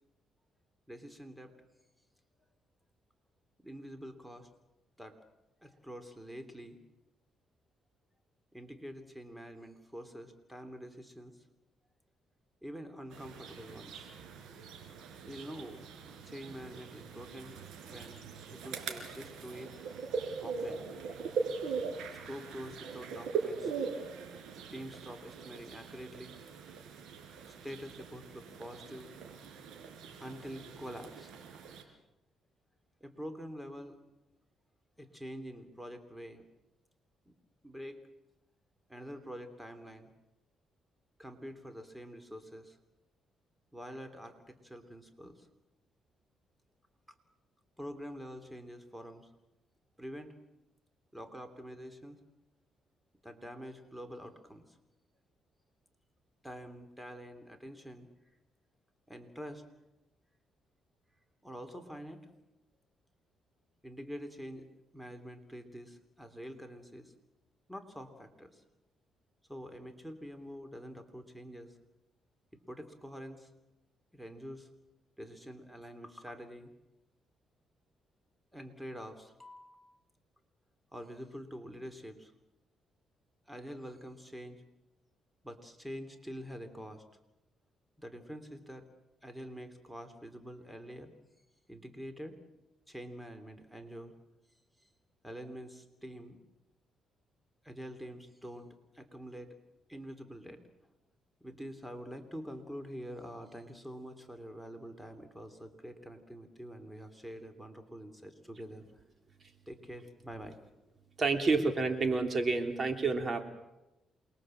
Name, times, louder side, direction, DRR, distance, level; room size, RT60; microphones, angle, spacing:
voice 1, 0.9-1.6 3.6-4.5 5.0-5.2 5.6-6.8 8.5-11.3 12.6-14.1 15.2-17.5 17.9-18.2 18.5-20.9 22.1-23.7 24.7-26.3 27.6-29.1 30.2-31.3 33.0-34.0 35.0-36.4 37.3-37.4 37.6-38.0 38.9-40.1 41.2-42.8 43.7-45.5 47.8-49.3 50.0-50.3 51.1-52.2 53.2-54.8 56.4-58.1 59.1-59.6 61.4-62.3 63.8-64.7 64.9-67.1 67.7-68.6 69.5-71.8 72.7-73.5 74.1-74.7 75.2-76.7 78.5-79.8 80.9-82.3 83.5-84.6 85.4-87.0 88.0-88.8 89.2-91.1 91.7-92.4 92.9-94.1 94.8-94.9 95.2-96.4 97.6-98.7 98.9-99.5 99.9-100.6 101.4-108.9 109.7-110.6, equal, 5° right, 8 dB, 3.0 m, -46 dB
sound 1, 13.1-31.8, right 5 dB, 80° right, 4.6 m, -41 dB
voice 2, 111.2-113.4, right 3 dB, 40° right, 6 dB, 3.3 m, -29 dB
28.0 x 21.5 x 7.8 m, 0.94 s
cardioid pair, 90°, 0 cm